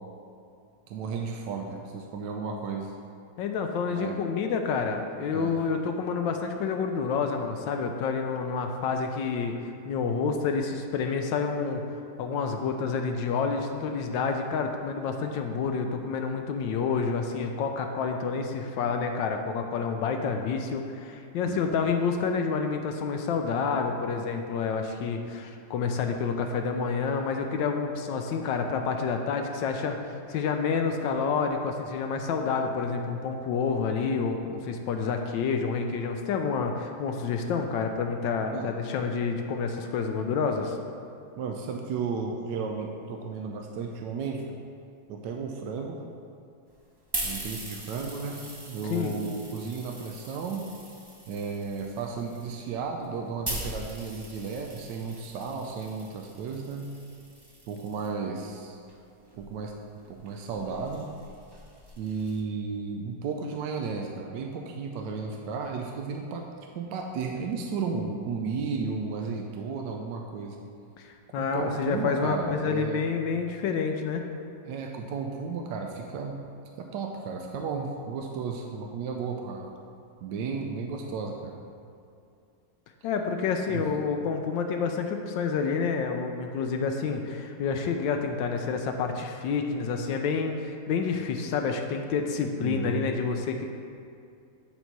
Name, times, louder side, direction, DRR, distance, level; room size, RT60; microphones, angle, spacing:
voice 1, 0.9-2.9 3.9-4.2 5.3-5.5 21.5-21.6 38.5-38.7 41.4-44.6 45.1-46.0 47.2-50.6 51.3-56.9 57.7-58.8 59.4-59.7 60.1-61.1 62.0-66.5 66.7-70.6 71.4-73.0 74.6-76.4 76.8-79.7 80.2-81.6 83.7-83.9 92.6-93.0, right 5 dB, 75° right, 2 dB, 1.2 m, -34 dB
voice 2, 3.4-9.5 9.8-40.8 48.9-49.2 71.0-74.2 83.0-93.7, left 5 dB, 85° left, 4 dB, 1.3 m, -29 dB
sound 1, 46.7-58.1 58.9-62.4, right 1 dB, 40° right, 0.3 m, -41 dB
9.0 x 4.1 x 4.6 m, 2.5 s
omnidirectional pair, 2.0 m